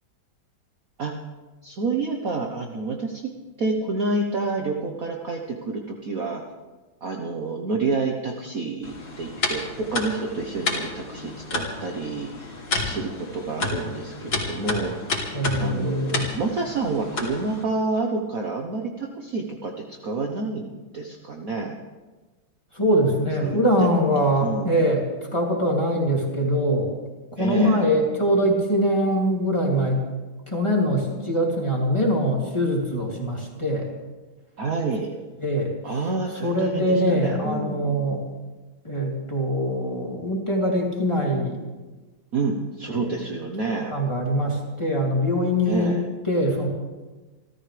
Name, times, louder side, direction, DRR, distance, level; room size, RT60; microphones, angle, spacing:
voice 1, 1.6-3.3 3.6-6.4 7.0-15.1 15.6-21.7 23.4-23.6 24.4-24.7 27.4-27.8 34.6-35.2 35.8-38.1 42.3-43.9 45.7-46.0, right 3 dB, 45° right, 1 dB, 1.4 m, -28 dB
sound 1, 8.8-17.6, left 2 dB, 55° left, 3.4 m, -31 dB
voice 2, 15.3-16.3 22.7-26.9 27.3-30.0 30.5-33.9 35.4-36.0 36.4-38.3 38.8-41.6 42.9-43.3 43.9-46.0 46.2-46.7, equal, 15° left, -2 dB, 2.9 m, -23 dB
28.5 x 13.5 x 3.4 m, 1.2 s
omnidirectional pair, 2.3 m